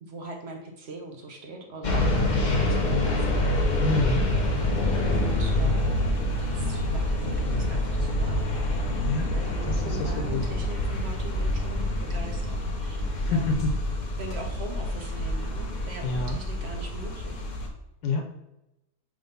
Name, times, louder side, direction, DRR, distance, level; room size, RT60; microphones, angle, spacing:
voice 1, 0.0-3.4 5.0-5.8 6.4-8.9 9.3-13.5 14.2-17.5, right 2 dB, 50° right, 2 dB, 0.8 m, -41 dB
sound 1, 1.8-17.7, left 1 dB, 35° left, 0.8 m, -26 dB
voice 2, 3.8-4.2 9.0-9.3 9.6-10.4 13.1-13.7 16.0-16.4 18.0-18.3, left 3 dB, 80° left, 4 dB, 1.5 m, -27 dB
5.2 x 3.8 x 5.3 m, 0.91 s
omnidirectional pair, 1.9 m